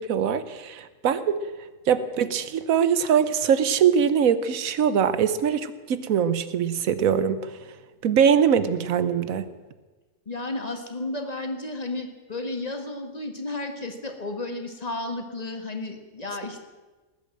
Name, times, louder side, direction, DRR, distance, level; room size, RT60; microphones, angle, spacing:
voice 1, 0.0-1.4 1.9-7.4 8.0-9.5, right 8 dB, 70° right, 13 dB, 1.3 m, -22 dB
voice 2, 10.2-16.6, left 2 dB, 30° left, 5 dB, 1.6 m, -33 dB
19.0 x 8.9 x 7.7 m, 1.3 s
omnidirectional pair, 1.5 m